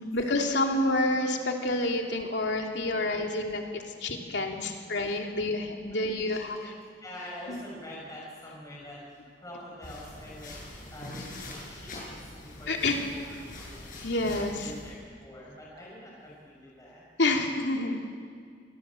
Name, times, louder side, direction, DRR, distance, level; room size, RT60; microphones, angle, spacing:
voice 1, 0.0-6.7 7.5-7.6 12.7-13.0 14.0-14.7 17.2-18.2, left 2 dB, 80° left, 2 dB, 2.9 m, -28 dB
voice 2, 4.3-4.7 5.9-6.7 7.0-9.0 9.4-10.5 10.9-13.3 13.7-13.8 14.3-14.9 15.2-17.0, left 1 dB, 20° left, -4 dB, 6.8 m, -45 dB
sound 1, 9.8-14.9, left 1 dB, 50° left, 7.8 m, -43 dB
28.0 x 20.5 x 7.7 m, 2.1 s
head